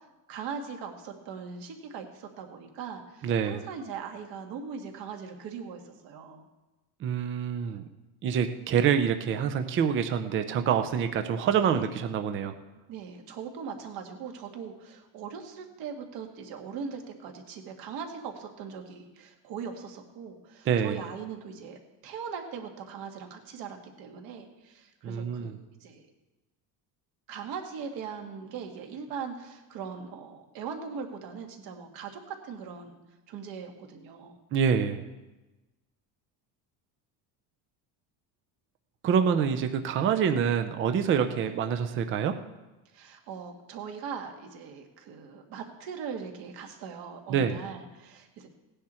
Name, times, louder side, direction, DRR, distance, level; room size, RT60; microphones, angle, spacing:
voice 1, 0.3-6.5 11.5-11.9 12.9-26.0 27.3-33.0 33.3-34.4 41.3-41.5 42.9-48.5, right 6 dB, 60° right, 3 dB, 2.0 m, -40 dB
voice 2, 3.2-3.6 7.0-7.8 8.2-12.5 20.7-21.0 25.0-25.6 34.5-35.0 39.0-42.3 47.3-47.6, right 7 dB, 30° right, 8 dB, 0.6 m, -26 dB
17.5 x 10.0 x 4.4 m, 1.1 s
cardioid pair, 175°, 41 cm